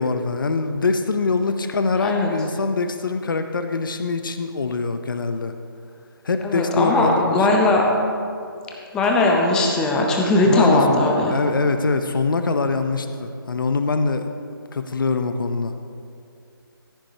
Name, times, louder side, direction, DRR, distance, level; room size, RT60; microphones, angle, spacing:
voice 1, 0.0-5.5 6.2-7.5 10.4-14.2 14.7-15.7, left 4 dB, 60° left, 8 dB, 0.7 m, -23 dB
voice 2, 2.0-2.3 6.4-7.8 8.9-11.4, left 2 dB, 5° left, 0 dB, 0.6 m, -19 dB
14.5 x 8.8 x 2.8 m, 2.4 s
figure-of-eight pair, 160°, 12 cm